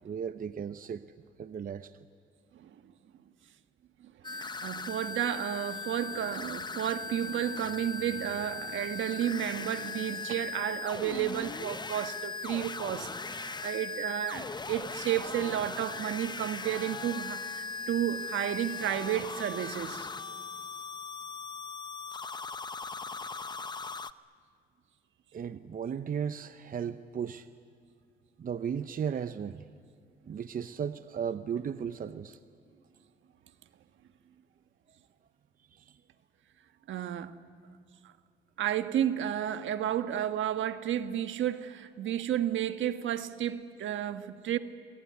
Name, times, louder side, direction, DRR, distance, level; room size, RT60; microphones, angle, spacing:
voice 1, 0.0-1.0 1.4-1.9 25.3-27.5 28.4-29.6 30.2-32.4 35.7-36.0, right 7 dB, 45° right, 0.8 m, -35 dB
sound 1, 4.2-24.1, left 4 dB, 20° left, 0.8 m, -39 dB
voice 2, 4.3-20.1 36.9-37.3 38.6-44.6, right 11 dB, 75° right, 1.4 m, -32 dB
26.5 x 21.5 x 9.7 m
cardioid pair, 90°, 20 cm